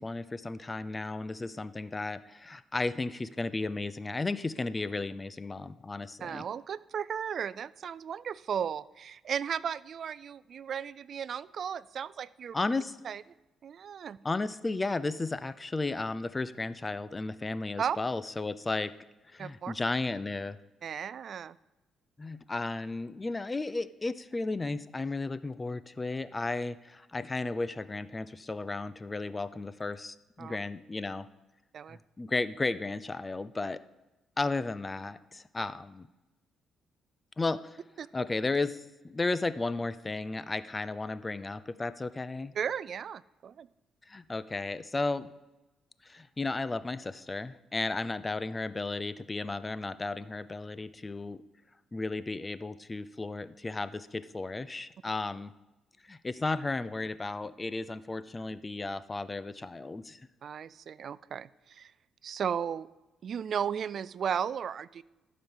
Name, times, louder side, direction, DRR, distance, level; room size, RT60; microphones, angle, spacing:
voice 1, 0.0-6.4 12.5-13.0 14.2-18.9 19.3-20.6 22.2-31.3 31.9-33.8 34.4-36.1 37.4-37.6 38.1-42.5 44.1-45.3 46.0-51.4 51.9-55.5 56.1-60.2, left 3 dB, 20° left, 15 dB, 0.5 m, -34 dB
voice 2, 6.2-12.5 13.0-13.2 13.6-14.2 17.8-18.0 19.4-19.7 20.8-21.6 30.4-30.6 31.7-32.0 38.0-38.1 42.6-43.7 60.4-61.9 62.2-62.9 63.2-65.0, right 8 dB, 55° right, 19 dB, 0.4 m, -35 dB
12.0 x 5.2 x 7.3 m, 1.0 s
cardioid pair, 90°, 0 cm